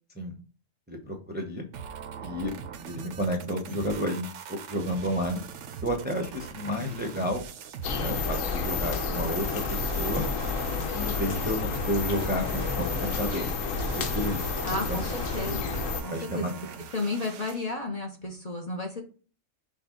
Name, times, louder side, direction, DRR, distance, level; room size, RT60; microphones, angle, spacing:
voice 1, 0.9-1.6 2.2-2.5 2.9-5.4 5.8-7.4 7.9-10.2 10.9-13.5 14.0-14.5 14.9-15.0 16.1-16.5, equal, 10° right, 2 dB, 0.7 m, -31 dB
sound 1, 1.7-17.7, right 7 dB, 70° right, 0.9 m, -42 dB
sound 2, 7.8-16.0, left 4 dB, 80° left, 1.1 m, -30 dB
voice 2, 14.6-15.8 16.0-16.5 16.9-19.0, left 2 dB, 35° left, 1 dB, 0.9 m, -33 dB
6.2 x 2.3 x 3.7 m, 0.37 s
omnidirectional pair, 1.3 m